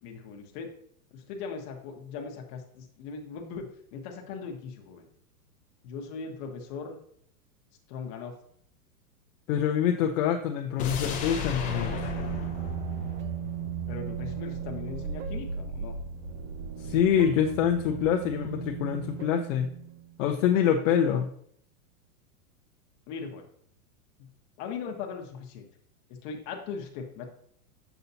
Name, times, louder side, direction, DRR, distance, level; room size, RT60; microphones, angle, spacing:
voice 1, 0.0-0.7 1.1-5.1 5.8-7.0 7.9-8.4 13.9-16.0 23.1-23.5 24.6-25.7 26.1-27.2, left 5 dB, 35° left, 2 dB, 1.0 m, -39 dB
voice 2, 9.5-11.9 16.8-19.7 20.2-21.3, left 9 dB, 55° left, 3 dB, 0.6 m, -25 dB
sound 1, 10.8-13.9 14.2-14.3, left 5 dB, 15° left, 0.6 m, -35 dB
sound 2, 11.6-20.2, right 7 dB, 60° right, 0.8 m, -36 dB
6.9 x 5.5 x 2.7 m, 0.65 s
supercardioid pair, 155°, 46 cm